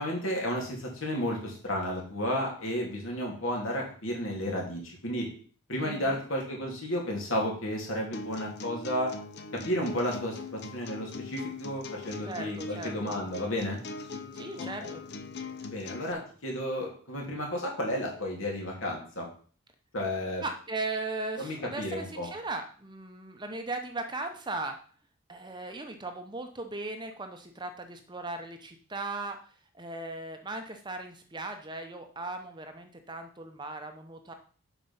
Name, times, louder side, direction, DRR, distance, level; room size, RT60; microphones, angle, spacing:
voice 1, 0.0-5.3 5.7-9.1 9.6-13.8 14.6-14.9 15.7-19.3 19.9-20.4 21.4-22.3, equal, 65° left, -1 dB, 2.9 m, -32 dB
voice 2, 5.8-6.2 12.3-13.1 14.3-15.0 20.4-24.8 25.3-29.4 29.7-34.3, right 2 dB, 20° right, 5 dB, 0.8 m, -38 dB
sound 1, 8.1-16.1, left 3 dB, 50° left, 0.7 m, -41 dB
7.7 x 5.1 x 5.6 m, 0.44 s
head